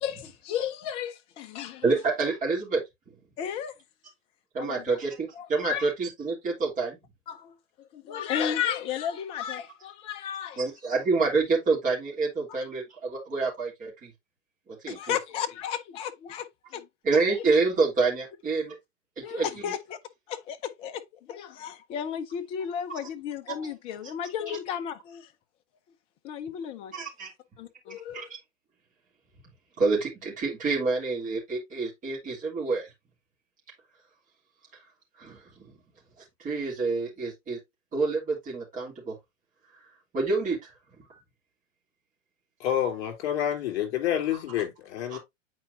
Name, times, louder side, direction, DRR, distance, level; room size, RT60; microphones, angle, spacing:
voice 1, 0.0-1.8 3.4-3.7 4.6-5.0 5.4-5.9 7.3-10.6 12.5-12.6 14.9-16.9 19.2-20.0 20.3-25.3 26.2-26.9 27.6-28.3, left 9 dB, 15° left, 0.4 m, -34 dB
voice 2, 1.8-2.8 4.5-7.0 10.6-14.1 14.7-15.2 17.0-18.8 19.2-19.5 26.9-27.3 28.1-28.2 29.8-32.9 35.2-35.7 36.4-37.6 37.9-39.2 40.1-40.7 44.3-44.4 45.1-45.2, right 4 dB, 20° right, 2.9 m, -27 dB
voice 3, 42.6-45.2, left 10 dB, 50° left, 3.3 m, -28 dB
8.7 x 4.5 x 2.6 m
hypercardioid pair, 115°, 39 cm